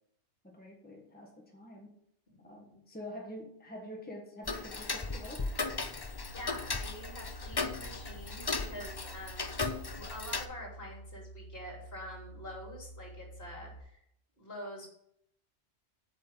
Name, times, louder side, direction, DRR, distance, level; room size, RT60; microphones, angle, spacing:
voice 1, 0.4-2.0 2.4-5.6, left 1 dB, 10° left, 0 dB, 1.4 m, -46 dB
voice 2, 2.4-2.8 5.9-9.6 9.9-14.0 14.4-14.9, left 1 dB, 55° left, -1 dB, 3.3 m, -46 dB
Tick-tock, 4.5-10.5, left 3 dB, 25° left, 0.5 m, -36 dB
sound 1, 6.2-13.8, right 1 dB, 20° right, 2.6 m, -50 dB
8.7 x 5.6 x 7.4 m, 0.73 s
omnidirectional pair, 1.2 m